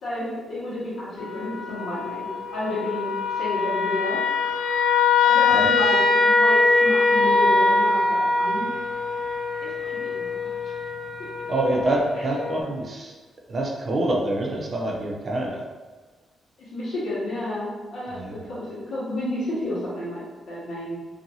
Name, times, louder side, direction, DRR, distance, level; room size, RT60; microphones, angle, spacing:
voice 1, 0.0-4.2 5.2-6.0 6.2-8.7 9.8-10.2 12.1-12.2 12.8-12.9 16.7-18.2 18.5-21.0, left 1 dB, 80° left, -9 dB, 1.3 m, -31 dB
sound 1, 1.2-12.6, left 3 dB, 55° left, 0.3 m, -22 dB
voice 2, 11.5-13.1 13.5-15.6 18.1-18.3, right 1 dB, 35° right, -1 dB, 0.5 m, -26 dB
2.7 x 2.7 x 2.6 m, 1.4 s
cardioid pair, 130°, 0 cm